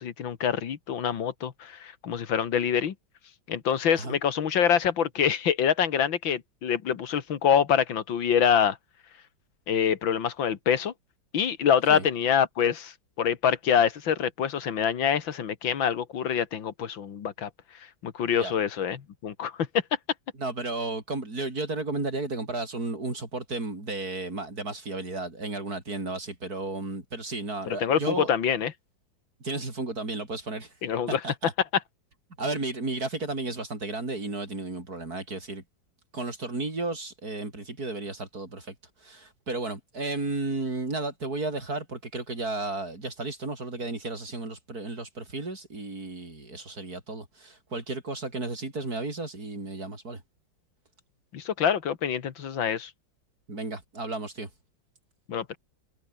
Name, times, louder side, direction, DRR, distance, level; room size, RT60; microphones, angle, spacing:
voice 1, 0.0-2.9 3.5-8.8 9.7-10.9 11.3-17.5 18.0-19.7 27.7-28.7 30.8-31.2 51.3-52.9 55.3-55.6, left 8 dB, 85° left, 2.4 m, -25 dB
voice 2, 20.3-28.3 29.4-30.7 31.1-31.5 32.4-35.6 36.1-50.2 53.5-54.5, right 2 dB, 50° right, 5.5 m, -33 dB
omnidirectional pair, 2.0 m